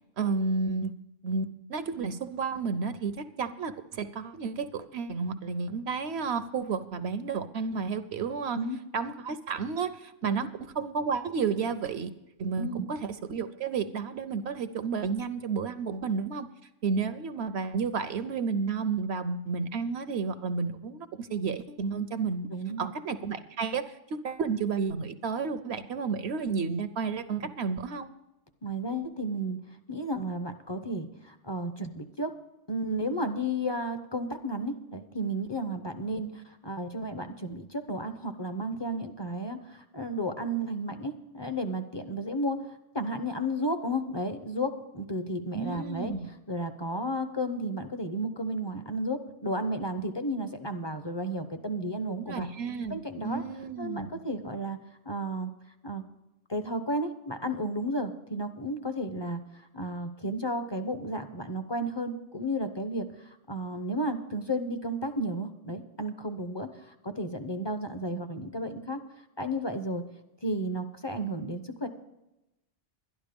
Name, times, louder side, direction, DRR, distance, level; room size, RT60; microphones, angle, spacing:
voice 1, 0.2-0.9 1.2-8.6 8.9-12.1 12.4-16.5 16.8-22.5 22.8-28.1 45.5-46.3 52.2-54.1, right 5 dB, 65° right, 12 dB, 0.8 m, -31 dB
voice 2, 22.5-22.9 27.4-27.5 28.6-29.6 29.9-32.3 32.7-46.1 46.5-52.5 52.9-53.4 53.8-54.8 55.1-55.5 55.8-56.0 56.5-59.4 59.7-69.0 69.4-70.0 70.4-71.9, equal, 25° left, 8 dB, 0.6 m, -33 dB
12.0 x 11.0 x 5.1 m, 0.93 s
omnidirectional pair, 1.3 m